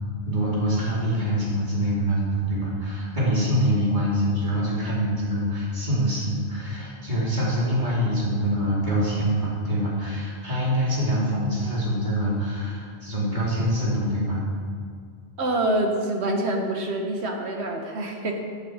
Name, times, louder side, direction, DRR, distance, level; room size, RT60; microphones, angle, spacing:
voice 1, 0.2-14.4, equal, 45° right, -7 dB, 4.0 m, -25 dB
voice 2, 15.4-18.4, right 1 dB, 90° right, 2 dB, 1.6 m, -26 dB
15.0 x 8.4 x 5.0 m, 2.1 s
omnidirectional pair, 1.1 m